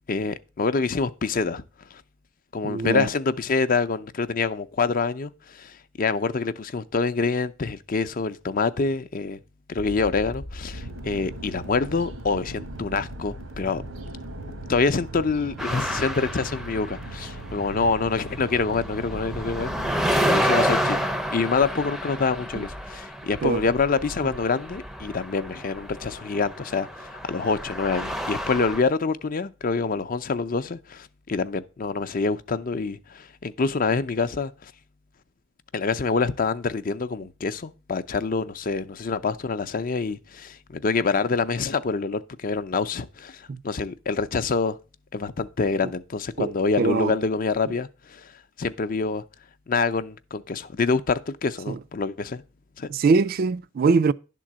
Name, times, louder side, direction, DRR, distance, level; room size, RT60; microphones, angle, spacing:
voice 1, 0.1-1.6 1.9-2.0 2.5-9.4 9.7-13.8 14.7-19.7 20.2-34.7 35.7-44.8 45.1-48.3 48.6-49.2 49.7-52.4 52.8-52.9, left 4 dB, 45° left, 0.5 m, -26 dB
voice 2, 2.6-3.1 22.5-22.6 23.4-23.7 43.5-43.6 46.4-47.2 51.7-51.8 52.9-54.1, right 4 dB, 50° right, 0.4 m, -23 dB
sound 1, 9.8-21.5, equal, 75° left, 0.8 m, -42 dB
sound 2, 10.7-21.1, right 2 dB, 90° right, 1.3 m, -40 dB
sound 3, 15.6-17.4 17.7-28.8, equal, ahead, 0.6 m, -29 dB
11.0 x 3.8 x 7.3 m
head